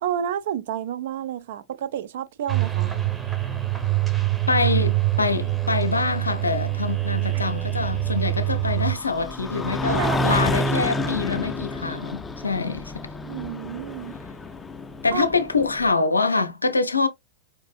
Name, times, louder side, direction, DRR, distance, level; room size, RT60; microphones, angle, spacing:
voice 1, 0.0-2.9 7.2-7.4 9.9-10.4 10.7-11.2 13.2-14.2 15.1-15.3, right 10 dB, 60° right, 0.4 m, -30 dB
sound 1, 2.5-8.9, right 16 dB, 15° right, 0.8 m, -24 dB
voice 2, 4.5-13.0 15.0-17.1, left 4 dB, 85° left, 0.5 m, -25 dB
sound 2, 5.3-15.9, left 1 dB, 15° left, 0.4 m, -30 dB
4.6 x 2.5 x 2.4 m
figure-of-eight pair, 95°, 0 cm